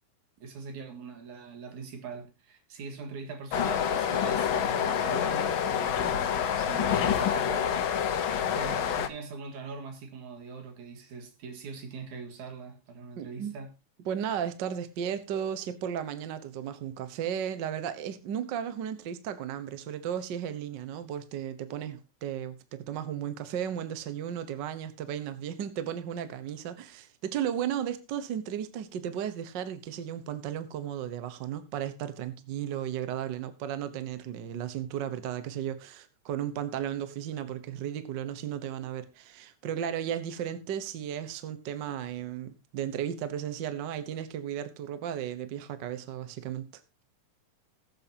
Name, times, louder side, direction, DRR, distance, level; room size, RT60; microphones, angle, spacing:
voice 1, 0.4-13.7, right 5 dB, 80° right, 3.3 m, -42 dB
sound 1, 3.5-9.1, left 8 dB, 65° left, 1.3 m, -27 dB
voice 2, 13.2-13.6 14.1-46.7, right 9 dB, 60° right, 1.2 m, -35 dB
20.5 x 7.7 x 2.8 m
omnidirectional pair, 3.4 m